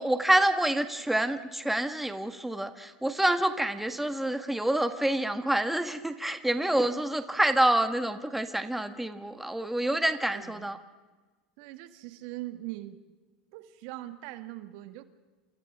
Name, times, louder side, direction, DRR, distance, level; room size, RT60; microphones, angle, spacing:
voice 1, 0.0-10.8, right 1 dB, 5° right, 7 dB, 1.7 m, -27 dB
voice 2, 10.3-10.7 11.6-13.0 13.5-15.0, right 16 dB, 65° right, 9 dB, 1.8 m, -41 dB
29.5 x 27.5 x 3.7 m, 1.3 s
hypercardioid pair, 100°, 4 cm